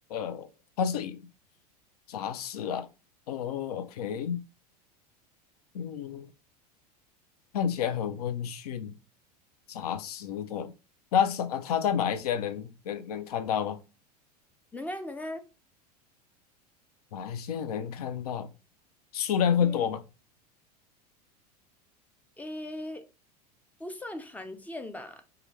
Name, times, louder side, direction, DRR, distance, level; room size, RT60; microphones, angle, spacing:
voice 1, 0.1-0.5 0.8-1.2 2.1-2.9 3.3-4.4 5.7-6.3 7.5-8.9 9.7-10.7 11.1-13.8 17.1-18.5 19.1-20.0, left 8 dB, 70° left, 0.5 m, -30 dB
voice 2, 14.7-15.4 19.6-20.0 22.4-23.0 23.8-25.2, left 1 dB, 5° left, 0.5 m, -39 dB
3.4 x 2.2 x 3.0 m
hypercardioid pair, 85°, 21 cm